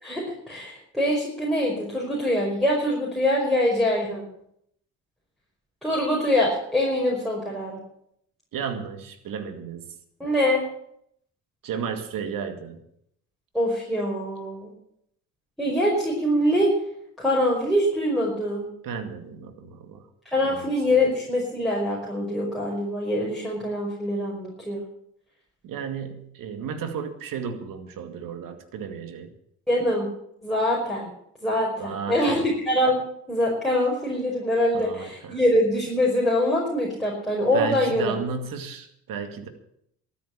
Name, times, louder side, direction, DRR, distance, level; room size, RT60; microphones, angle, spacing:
voice 1, 0.0-4.3 5.8-7.8 10.2-10.6 13.5-14.7 15.6-16.7 17.2-18.7 20.3-24.8 29.7-30.1 30.4-31.1 31.4-32.4 32.7-33.0 33.3-38.1, left 1 dB, ahead, -3 dB, 5.4 m, -24 dB
voice 2, 8.5-10.0 11.6-12.8 18.8-20.0 20.4-20.7 25.6-29.3 31.8-32.4 34.7-35.4 37.5-39.5, right 6 dB, 65° right, 8 dB, 2.3 m, -33 dB
13.5 x 9.5 x 8.7 m, 0.73 s
hypercardioid pair, 60°, 36 cm